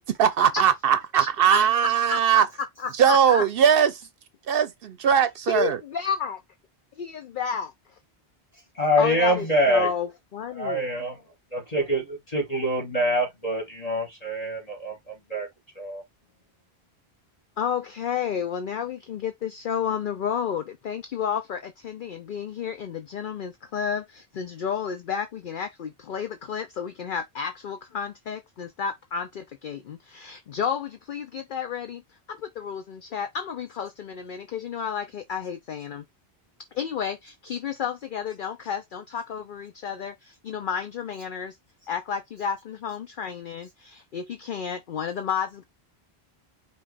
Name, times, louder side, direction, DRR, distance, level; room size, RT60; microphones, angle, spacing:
voice 1, 0.2-2.5 3.0-3.9 4.5-5.8, right 8 dB, 65° right, 0.8 m, -20 dB
voice 2, 1.2-2.2 2.8-3.4 5.5-6.4 7.0-7.7 9.0-10.1 10.3-10.9 17.6-32.0 32.3-36.0 36.7-41.5 41.9-45.6, left 7 dB, 60° left, 0.7 m, -31 dB
voice 3, 8.7-9.9 10.6-11.1 11.5-15.5 15.8-16.0, equal, 35° left, 2.5 m, -25 dB
5.4 x 2.5 x 3.4 m
omnidirectional pair, 1.1 m